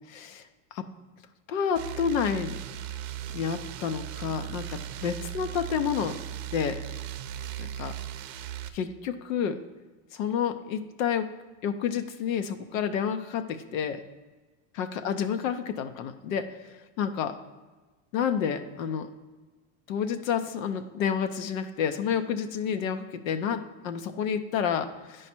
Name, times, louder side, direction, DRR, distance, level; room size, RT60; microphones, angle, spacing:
voice 1, 0.1-0.4 0.7-0.9 1.5-2.6 3.3-6.2 6.5-6.8 7.6-7.9 8.7-9.6 10.1-11.3 11.6-14.0 14.7-17.4 18.1-19.1 19.9-25.3, left 7 dB, 85° left, 8 dB, 0.7 m, -30 dB
sound 1, 1.8-8.7, right 11 dB, 55° right, 0.6 m, -37 dB
9.8 x 4.9 x 4.3 m, 1.3 s
supercardioid pair, 135°, 39 cm